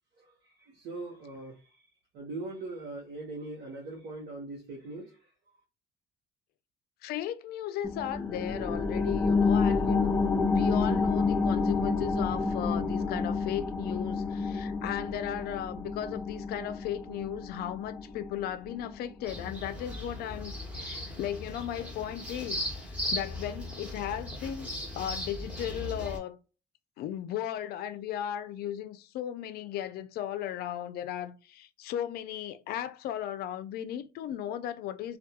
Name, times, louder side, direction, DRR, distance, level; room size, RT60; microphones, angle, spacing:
voice 1, 0.2-1.9 2.1-5.3, right 2 dB, 85° right, 0.8 m, -41 dB
voice 2, 7.0-24.7 25.0-26.4 27.0-35.2, left 11 dB, 70° left, 0.4 m, -36 dB
sound 1, 7.8-18.9 19.3-19.4, left 4 dB, 10° left, 0.5 m, -29 dB
sound 2, 19.2-26.2, left 1 dB, 5° right, 1.0 m, -37 dB
2.3 x 2.2 x 2.8 m
cardioid pair, 110°, 17 cm